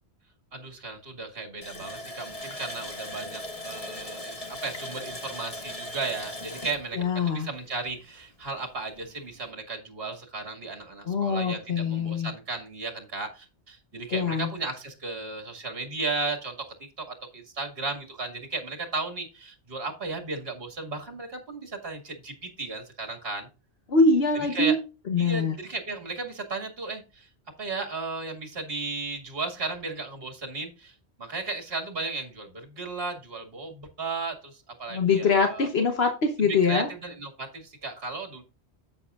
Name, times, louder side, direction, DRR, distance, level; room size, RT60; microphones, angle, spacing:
voice 1, 0.5-16.7 17.0-23.5 24.3-24.8 25.2-27.3 27.6-35.7 36.4-38.4, right 3 dB, 60° right, 3 dB, 2.2 m, -35 dB
Water tap faucet, 1.6-8.1 8.4-8.5 9.0-9.1, left 1 dB, 30° left, 1.5 m, -39 dB
voice 2, 7.0-7.5 11.1-12.3 14.1-14.5 23.9-24.8 25.1-25.5 34.9-36.9, left 4 dB, 65° left, 5 dB, 1.3 m, -23 dB
10.5 x 8.5 x 2.4 m, 0.31 s
omnidirectional pair, 1.1 m